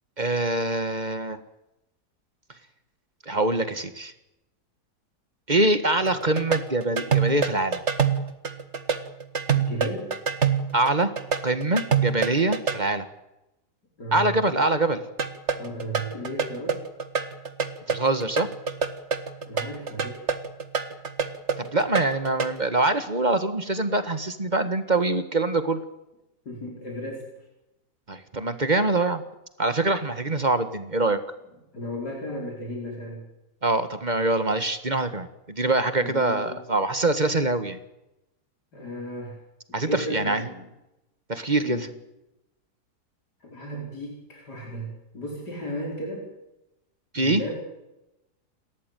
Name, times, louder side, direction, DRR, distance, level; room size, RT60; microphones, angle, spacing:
voice 1, 0.2-1.4 3.3-4.1 5.5-7.8 10.7-11.1 11.4-13.1 14.1-15.0 17.9-18.5 21.6-25.8 28.1-29.2 29.6-31.2 33.6-37.8 39.7-40.4 41.3-41.9 47.1-47.4, right 2 dB, 30° right, 10 dB, 1.7 m, -24 dB
sound 1, 6.1-12.8 15.2-22.6, right 6 dB, 45° right, 2.0 m, -26 dB
voice 2, 9.5-10.2 14.0-14.3 15.5-16.9 19.5-20.2 26.5-27.2 31.7-33.2 36.0-36.6 38.7-39.4 39.8-40.6 41.6-41.9 43.4-46.3 47.2-47.5, equal, 85° left, -1 dB, 5.6 m, -35 dB
29.5 x 14.0 x 9.3 m, 0.91 s
omnidirectional pair, 1.7 m